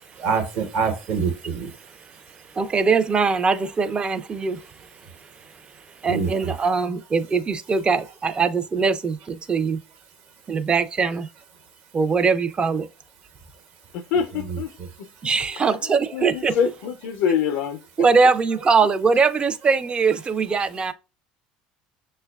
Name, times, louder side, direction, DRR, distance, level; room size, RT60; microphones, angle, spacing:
voice 1, 0.2-1.7 6.0-6.5 14.5-14.6, right 5 dB, 60° right, 1.1 m, -25 dB
voice 2, 2.5-4.6 6.0-9.8 10.5-11.3 11.9-12.9 15.2-16.5 18.0-20.9, right 5 dB, 25° right, 0.4 m, -21 dB
voice 3, 13.9-14.7 15.0-15.1 15.6-18.3, left 7 dB, 75° left, 0.4 m, -26 dB
6.2 x 2.2 x 2.3 m
supercardioid pair, 95°, 4 cm